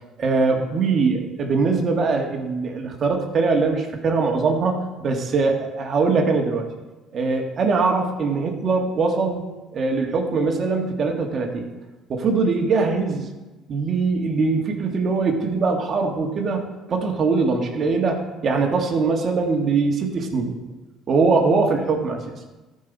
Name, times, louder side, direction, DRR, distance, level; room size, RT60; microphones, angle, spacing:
voice 1, 0.2-6.7 7.1-9.4 9.7-11.7 12.1-13.3 13.7-16.6 16.9-20.6 21.1-22.4, right 4 dB, 45° right, 2 dB, 1.9 m, -22 dB
13.5 x 5.6 x 4.2 m, 1.2 s
supercardioid pair, 90°, 0 cm